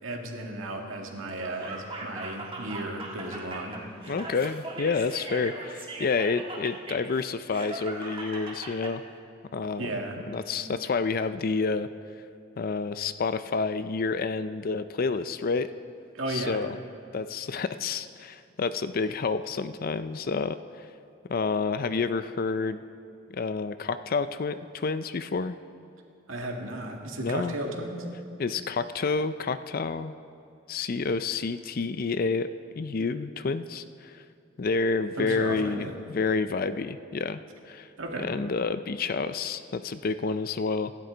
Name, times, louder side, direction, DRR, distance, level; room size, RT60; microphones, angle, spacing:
voice 1, 0.0-3.8 9.8-10.2 10.6-10.7 16.1-16.6 26.3-28.1 35.2-35.9 38.0-38.3, right 1 dB, 85° right, 1 dB, 2.1 m, -34 dB
Laughter, 1.2-8.9, right 2 dB, 25° right, 1.9 m, -40 dB
voice 2, 4.1-9.0 9.5-9.9 10.3-11.9 12.6-15.7 16.3-16.8 17.1-20.9 21.3-22.8 23.3-25.6 27.2-27.5 28.4-30.1 30.7-32.5 32.8-34.2 34.6-37.4 37.7-37.9 38.2-40.9, left 4 dB, 45° left, 12 dB, 0.4 m, -29 dB
26.5 x 12.0 x 4.0 m, 2.7 s
head